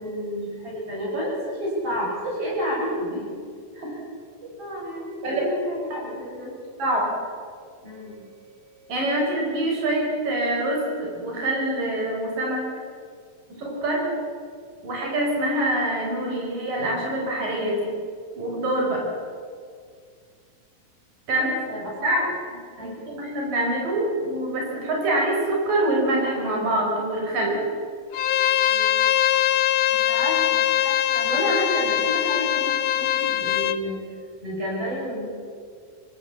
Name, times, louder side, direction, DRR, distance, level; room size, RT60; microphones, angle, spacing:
voice 1, 0.0-3.3 3.7-4.0 4.4-6.6 7.8-8.9 21.3-22.2 22.8-23.0 23.4-23.6 28.7-29.0 29.9-34.0 34.4-35.3, equal, 40° right, -4 dB, 8.7 m, -30 dB
voice 2, 8.9-12.6 13.6-14.0 14.8-17.9 18.4-19.0 21.3-21.5 22.0-22.2 22.8-27.6, right 1 dB, 65° right, -2 dB, 6.2 m, -25 dB
Bowed string instrument, 28.1-33.8, left 12 dB, 80° left, 1.4 m, -22 dB
25.5 x 17.5 x 7.3 m, 2.1 s
omnidirectional pair, 4.2 m